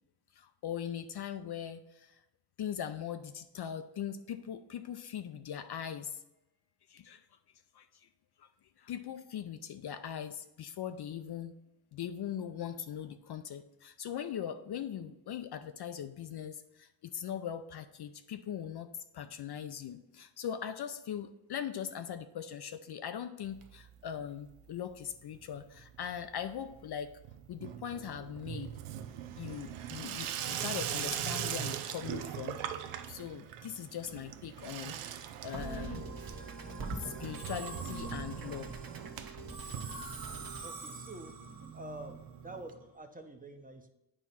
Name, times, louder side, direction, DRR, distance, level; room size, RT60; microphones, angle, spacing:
voice 1, 0.3-2.2 2.6-6.2 6.9-7.2 7.7-8.1 8.4-8.5 8.8-11.5 11.9-27.2 27.5-28.8 29.4-32.6 33.1-36.0 37.0-38.7, left 9 dB, 55° left, 9 dB, 0.5 m, -40 dB
Water tap faucet / Sink (filling or washing), 23.4-24.2 24.5-25.1 25.3-40.6 41.0-41.1 41.2-41.3 41.6-41.7 42.7-42.8, right 10 dB, 85° right, 0.7 m, -41 dB
Musical instrument, 35.5-42.9, right 4 dB, 45° right, 1.1 m, -43 dB
voice 2, 40.5-41.4 41.7-43.9, right 1 dB, 15° right, 6 dB, 0.8 m, -47 dB
8.6 x 3.0 x 5.6 m, 0.91 s
cardioid pair, 65°, 50 cm